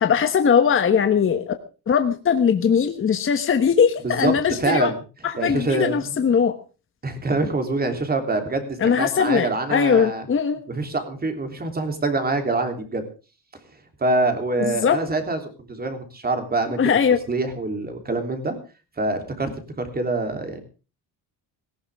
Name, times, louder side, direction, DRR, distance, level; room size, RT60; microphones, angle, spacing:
voice 1, 0.0-1.5 1.9-4.9 5.2-6.5 8.8-10.6 14.8-15.0 16.8-17.2, left 7 dB, 30° left, 7 dB, 1.3 m, -20 dB
voice 2, 4.0-5.0 5.4-6.2 7.0-10.3 10.7-13.0 14.0-15.4 15.7-17.0 17.3-18.6 19.0-19.5 19.8-20.6, right 2 dB, 25° right, 6 dB, 3.3 m, -25 dB
18.0 x 16.0 x 3.6 m, 0.34 s
cardioid pair, 140°, 40 cm